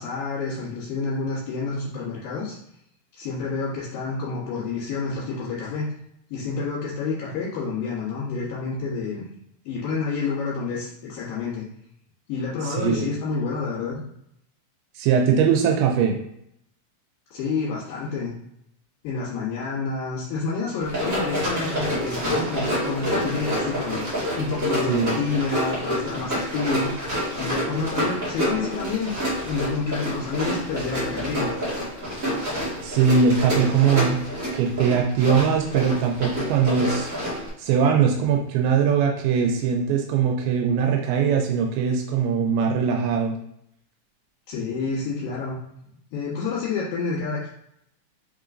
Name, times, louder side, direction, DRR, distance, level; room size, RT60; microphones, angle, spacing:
voice 1, 0.0-2.6 3.1-5.9 6.3-9.2 9.6-11.6 12.3-14.0 17.3-18.3 19.0-24.0 24.4-27.1 27.4-29.1 29.4-31.5 44.5-45.6 46.1-47.5, left 4 dB, 75° left, -9 dB, 2.9 m, -29 dB
voice 2, 12.6-13.1 15.0-16.2 24.9-25.2 32.8-34.2 34.5-37.1 37.6-43.3, right 6 dB, 85° right, 2 dB, 2.5 m, -21 dB
Run, 20.8-37.5, equal, 40° right, 1.2 m, -28 dB
5.4 x 3.8 x 2.5 m, 0.74 s
omnidirectional pair, 4.3 m